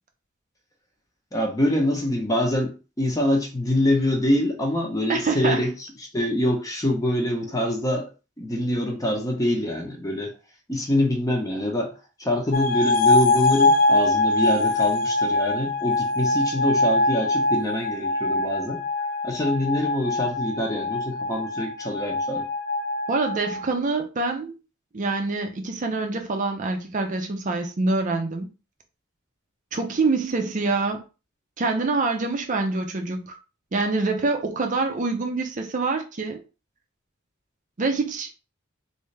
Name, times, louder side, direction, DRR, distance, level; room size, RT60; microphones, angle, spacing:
voice 1, 1.3-5.7 6.0-8.1 8.4-10.3 10.7-18.8 19.2-22.5, left 1 dB, 15° left, 0.8 m, -25 dB
voice 2, 5.1-5.6 23.1-24.5 24.9-28.5 29.7-31.0 31.6-33.4 33.7-36.4 37.8-38.3, right 3 dB, 40° right, 0.5 m, -25 dB
sound 1, 12.5-23.6, left 2 dB, 45° left, 0.4 m, -23 dB
3.4 x 2.6 x 3.2 m
head